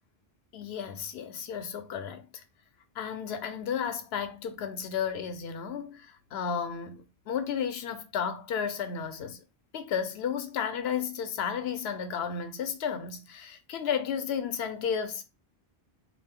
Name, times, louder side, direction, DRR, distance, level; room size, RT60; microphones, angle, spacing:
voice 1, 0.5-2.4 3.0-9.4 9.7-15.2, left 7 dB, 85° left, 0.8 m, -33 dB
2.6 x 2.0 x 3.5 m
omnidirectional pair, 1.1 m